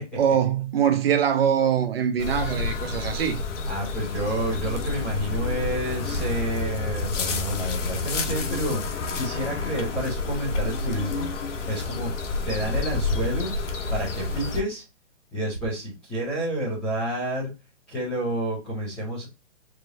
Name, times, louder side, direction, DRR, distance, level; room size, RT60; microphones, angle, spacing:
voice 1, 0.2-3.4, right 8 dB, 55° right, 0.9 m, -23 dB
sound 1, 2.2-14.6, left 3 dB, 75° left, 1.2 m, -29 dB
voice 2, 3.7-8.8 9.1-11.3 11.7-12.1 12.4-13.5 13.9-14.8 15.3-17.5 17.9-19.2, right 1 dB, 5° left, 0.5 m, -29 dB
4.8 x 3.0 x 2.6 m
hypercardioid pair, 165°, 36 cm